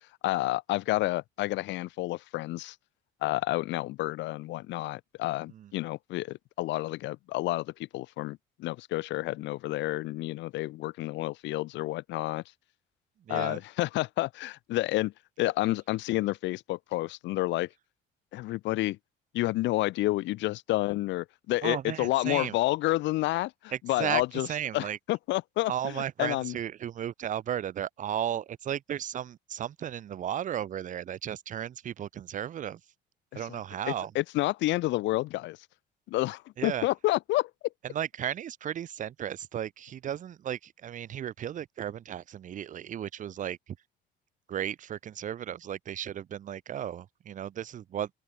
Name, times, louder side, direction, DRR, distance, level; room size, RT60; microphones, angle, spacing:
voice 1, 0.2-2.8 3.2-12.4 13.3-17.7 18.3-19.0 19.3-24.5 24.7-26.5 33.3-33.4 34.1-35.6 36.1-37.5, left 18 dB, 75° left, 2.3 m, -30 dB
voice 2, 13.3-13.6 21.6-22.6 23.7-25.0 25.7-32.8 33.3-34.1 36.6-36.9 37.8-43.8 44.5-48.1, right 10 dB, 40° right, 4.2 m, -35 dB
open air
cardioid pair, 160°, 19 cm